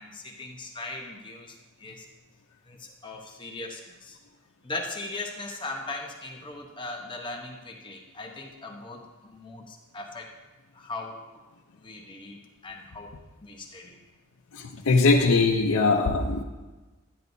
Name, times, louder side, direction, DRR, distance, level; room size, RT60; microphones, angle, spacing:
voice 1, 0.0-2.1 2.7-4.2 4.6-10.3 10.7-11.2 11.8-14.0, left 2 dB, 20° left, 1 dB, 0.9 m, -39 dB
voice 2, 14.5-16.4, left 3 dB, 80° left, -1 dB, 0.7 m, -21 dB
12.0 x 9.1 x 2.7 m, 1.2 s
head